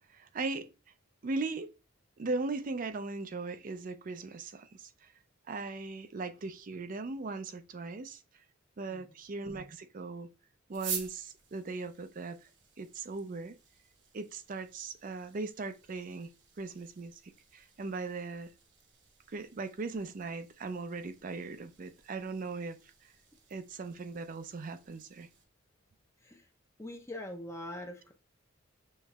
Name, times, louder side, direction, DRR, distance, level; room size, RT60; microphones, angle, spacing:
voice 1, 0.1-0.7 1.2-1.7 2.2-5.1 5.5-8.2 8.8-10.3 10.7-12.4 12.8-13.6 14.1-16.3 16.6-18.5 19.3-22.8 23.5-25.3, right 3 dB, 40° right, 0.4 m, -38 dB
sound 1, 10.7-25.4, right 6 dB, 60° right, 1.0 m, -49 dB
voice 2, 26.8-28.1, left 1 dB, 15° left, 0.5 m, -42 dB
6.5 x 3.1 x 2.3 m
head